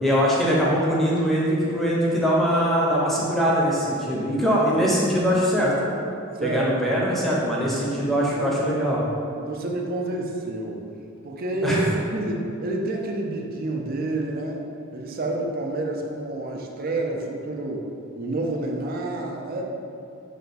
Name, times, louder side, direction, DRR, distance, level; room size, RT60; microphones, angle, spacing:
voice 1, 0.0-5.7 6.4-9.0 11.6-11.9, equal, ahead, -6 dB, 0.7 m, -22 dB
voice 2, 6.3-6.7 9.5-10.8 11.2-14.6 14.9-17.8 18.1-19.6, right 2 dB, 45° right, 1 dB, 0.4 m, -29 dB
5.2 x 2.3 x 4.0 m, 2.7 s
head